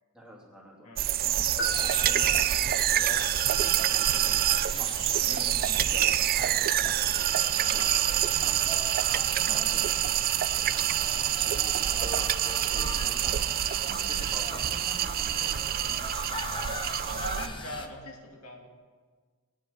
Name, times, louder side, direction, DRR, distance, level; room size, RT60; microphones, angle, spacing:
voice 1, 0.1-1.5 1.8-4.3 4.8-4.9 5.2-8.0 9.1-10.0 10.7-13.5 13.8-16.3, left 1 dB, 5° right, -4 dB, 2.6 m, -47 dB
voice 2, 0.8-1.2 5.1-5.6 8.3-8.8 15.3-15.5 17.2-18.7, left 1 dB, 75° left, 0 dB, 2.3 m, -42 dB
sound 1, 1.0-17.5, right 12 dB, 45° right, 0.3 m, -26 dB
sound 2, 1.6-3.0, right 2 dB, 50° left, 1.4 m, -37 dB
sound 3, 1.7-17.9, left 3 dB, 20° left, 0.8 m, -40 dB
19.5 x 9.5 x 4.3 m, 1.5 s
head